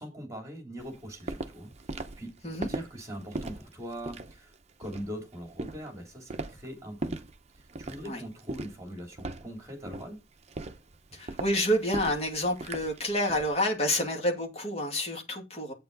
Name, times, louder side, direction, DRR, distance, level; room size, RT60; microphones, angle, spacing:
voice 1, 0.0-2.3 2.6-4.5 4.8-7.1 7.8-10.2, equal, 15° right, 2.9 m, -41 dB
Walk footsteps, 0.8-13.6, right 2 dB, 35° right, 0.8 m, -39 dB
voice 2, 11.1-15.7, left 1 dB, 35° left, 2.4 m, -28 dB
8.6 x 6.9 x 4.0 m
head